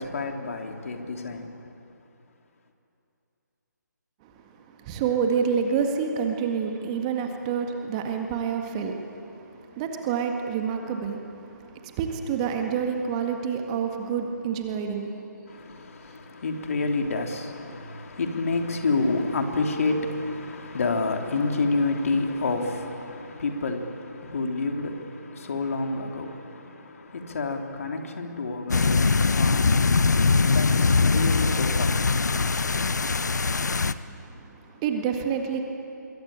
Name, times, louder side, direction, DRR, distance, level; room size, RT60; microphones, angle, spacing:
voice 1, 0.0-1.5 15.5-30.0 30.5-32.0, left 3 dB, 50° left, 3 dB, 3.1 m, -29 dB
voice 2, 4.2-15.3 34.1-35.6, right 6 dB, 20° right, 3 dB, 1.9 m, -28 dB
sound 1, 28.7-33.9, left 4 dB, 65° left, 1.0 m, -22 dB
26.0 x 22.0 x 8.9 m, 2.8 s
figure-of-eight pair, 145°, 10 cm